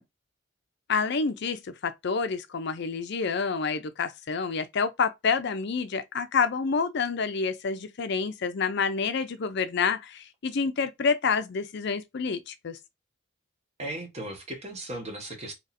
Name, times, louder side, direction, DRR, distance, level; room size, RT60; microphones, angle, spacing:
voice 1, 0.9-12.8, left 5 dB, 55° left, 0.5 m, -28 dB
voice 2, 13.8-15.5, right 1 dB, 35° right, 1.1 m, -36 dB
2.9 x 2.6 x 4.1 m
head